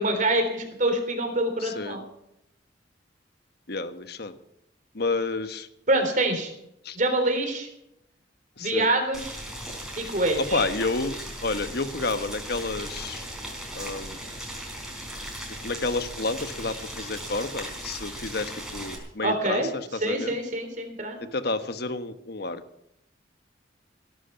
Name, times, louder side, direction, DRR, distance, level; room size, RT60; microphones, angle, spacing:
voice 1, 0.0-2.0 5.9-6.5 6.9-7.7 8.6-9.4 10.0-10.7 19.2-19.7 20.0-21.3, right 1 dB, 45° right, 5 dB, 3.7 m, -25 dB
voice 2, 1.6-2.0 3.7-4.3 4.9-5.7 6.8-7.0 8.6-8.9 10.5-13.2 13.8-14.2 15.6-19.7 19.9-20.3 21.3-22.6, left 3 dB, 55° left, 10 dB, 1.3 m, -30 dB
Boiling, 9.1-19.0, right 1 dB, ahead, 4.2 m, -37 dB
17.0 x 12.5 x 5.9 m, 0.81 s
head